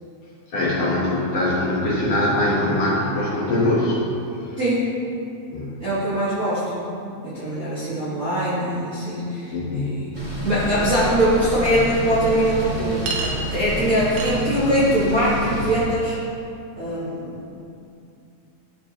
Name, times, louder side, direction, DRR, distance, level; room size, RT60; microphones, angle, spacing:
voice 1, 0.5-4.0 4.4-4.5 5.5-5.8 9.5-10.0, left 1 dB, 60° left, -7 dB, 1.8 m, -22 dB
voice 2, 4.6-4.9 5.8-6.9 7.2-10.1 10.4-16.2 16.7-17.4, equal, 40° right, -13 dB, 1.3 m, -22 dB
sound 1, 10.1-15.8, equal, 20° right, 0.8 m, -29 dB
Chink clink, 11.7-11.8 13.1-13.3 14.2-14.4, right 4 dB, 75° right, 1.5 m, -28 dB
12.0 x 4.5 x 2.9 m, 2.6 s
omnidirectional pair, 3.5 m